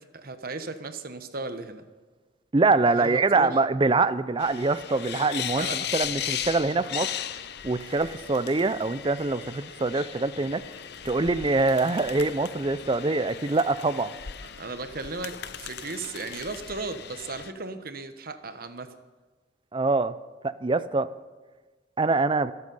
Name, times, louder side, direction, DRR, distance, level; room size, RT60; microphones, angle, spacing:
voice 1, 0.0-1.8 2.9-3.6 5.5-5.8 14.4-18.9, right 3 dB, 50° right, 9 dB, 1.1 m, -36 dB
voice 2, 2.5-7.1 7.6-10.6 11.0-14.1 19.7-20.1 20.4-21.1 22.0-22.5, right 3 dB, 25° right, 14 dB, 0.5 m, -24 dB
sound 1, 4.4-17.5, left 9 dB, 60° left, 0.7 m, -37 dB
24.5 x 8.3 x 5.4 m, 1.3 s
head